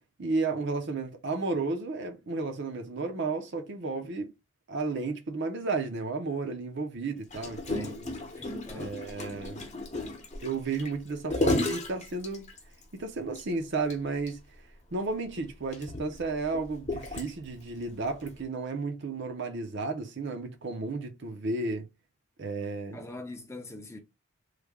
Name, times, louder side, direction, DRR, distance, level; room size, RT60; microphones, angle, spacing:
voice 1, 0.2-4.3 4.7-8.2 8.8-9.6 10.4-12.5 12.9-14.4 14.9-21.9 22.4-23.0, right 3 dB, 55° right, 0.6 m, -33 dB
Gurgling, 7.3-12.8 13.4-13.5 13.7-13.9 14.3-14.4 15.1-17.6 18.3-18.4, left 2 dB, 35° left, 0.9 m, -33 dB
voice 2, 7.7-8.0 8.4-9.1 22.9-24.0, left 2 dB, 10° left, 0.5 m, -43 dB
3.2 x 2.2 x 3.5 m
head